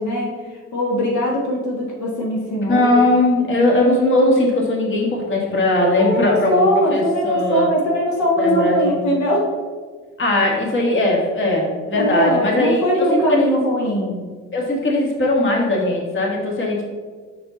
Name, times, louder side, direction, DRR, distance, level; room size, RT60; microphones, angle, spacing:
voice 1, 0.0-3.0 5.8-9.5 11.9-14.2, equal, 70° left, -2 dB, 1.4 m, -21 dB
voice 2, 2.7-7.7 8.4-9.0 10.2-13.6 14.5-16.8, left 1 dB, 40° left, -1 dB, 1.6 m, -19 dB
5.8 x 5.3 x 3.9 m, 1.5 s
cardioid pair, 90°, 30 cm